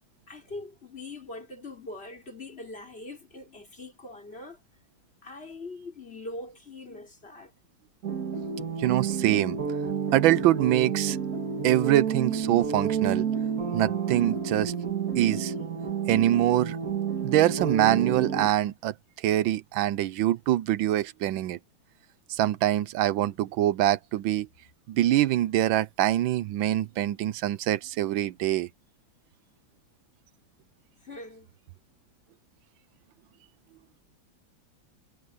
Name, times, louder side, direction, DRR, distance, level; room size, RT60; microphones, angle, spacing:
voice 1, 0.3-4.6 5.2-7.5 31.0-31.5, left 2 dB, 30° left, 4.0 m, -42 dB
sound 1, 8.0-18.5, right 6 dB, 50° right, 2.2 m, -30 dB
voice 2, 8.8-9.6 10.1-11.2 11.6-13.3 13.7-14.8 15.1-15.5 16.1-16.8 17.2-21.6 22.3-24.5 24.9-28.7, right 13 dB, 90° right, 1.5 m, -24 dB
omnidirectional pair, 2.1 m